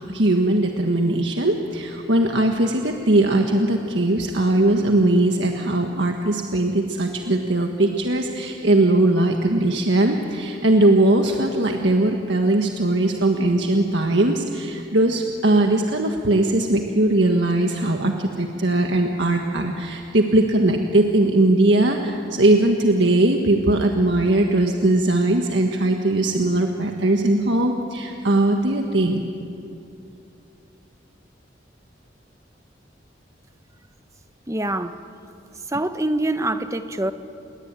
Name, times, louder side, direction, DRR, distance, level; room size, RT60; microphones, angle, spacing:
voice 1, 0.1-29.2, right 1 dB, 70° right, 3 dB, 1.6 m, -20 dB
voice 2, 34.5-35.0 35.7-37.1, right 1 dB, 15° right, 9 dB, 1.0 m, -24 dB
28.5 x 22.0 x 9.1 m, 2.7 s
head